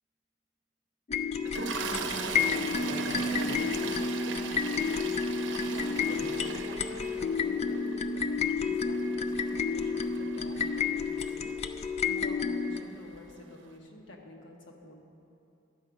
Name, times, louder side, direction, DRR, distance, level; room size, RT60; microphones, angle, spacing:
sound 1, 1.1-12.8, left 5 dB, 35° left, 0.3 m, -30 dB
Toilet flush, 1.4-11.7 12.7-12.9 13.1-13.3, right 5 dB, 70° right, 0.7 m, -39 dB
voice 1, 1.8-3.7 6.0-6.4, right 2 dB, 40° right, 3 dB, 0.8 m, -44 dB
voice 2, 3.1-3.7 5.6-15.0, left 1 dB, 75° left, 0 dB, 1.3 m, -47 dB
11.0 x 6.9 x 5.1 m, 2.7 s
head